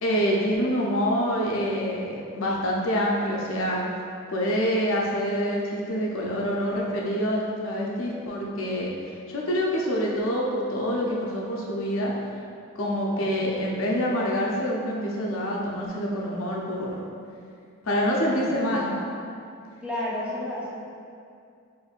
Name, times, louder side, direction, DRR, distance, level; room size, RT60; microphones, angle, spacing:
voice 1, 0.0-3.8 4.3-8.9 9.3-12.1 12.7-17.0 17.8-19.0, equal, 70° left, -3 dB, 0.5 m, -26 dB
voice 2, 13.1-13.4 18.3-18.7 19.8-20.8, left 1 dB, 5° right, -8 dB, 0.5 m, -33 dB
4.3 x 2.6 x 2.4 m, 2.4 s
head